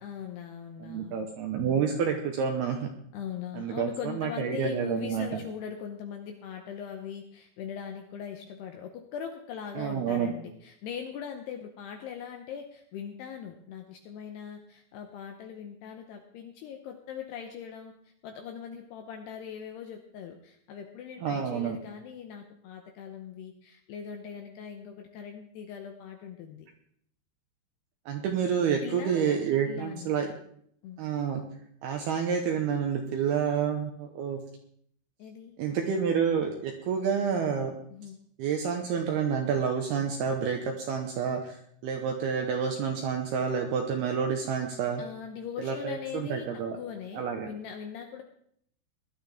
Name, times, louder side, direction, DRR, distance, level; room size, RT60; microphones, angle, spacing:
voice 1, 0.0-1.3 1.6-1.9 3.1-26.7 28.8-29.4 29.7-30.1 30.8-31.0 35.2-35.6 37.9-38.2 45.0-46.5 46.8-48.2, left 8 dB, 75° left, 4 dB, 2.5 m, -40 dB
voice 2, 0.8-2.9 3.5-5.4 9.8-10.3 21.2-21.8 28.1-30.3 31.0-31.4 31.8-34.4 35.6-37.8 38.4-45.0 45.6-46.8 47.1-47.5, right 7 dB, 75° right, 3 dB, 2.4 m, -29 dB
19.5 x 11.5 x 3.6 m, 0.67 s
omnidirectional pair, 5.8 m